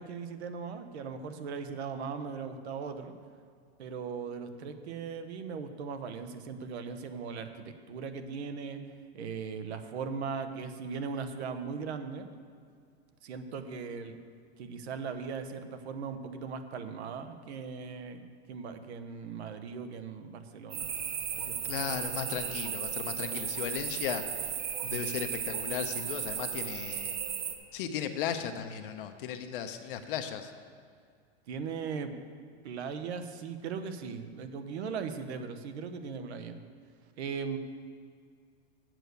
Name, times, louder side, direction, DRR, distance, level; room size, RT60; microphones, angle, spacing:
voice 1, 0.0-3.1 3.8-8.8 9.1-12.3 13.2-14.2 14.6-20.9 21.4-22.0 24.8-25.1 31.5-32.1 32.6-36.6 37.2-37.6, right 5 dB, 75° right, 8 dB, 1.0 m, -39 dB
sound 1, 20.7-27.5, right 8 dB, 30° right, 0.7 m, -35 dB
voice 2, 21.6-24.2 24.9-27.2 27.7-30.5, left 8 dB, 55° left, 7 dB, 0.7 m, -36 dB
8.0 x 7.5 x 6.8 m, 2.2 s
supercardioid pair, 165°, 33 cm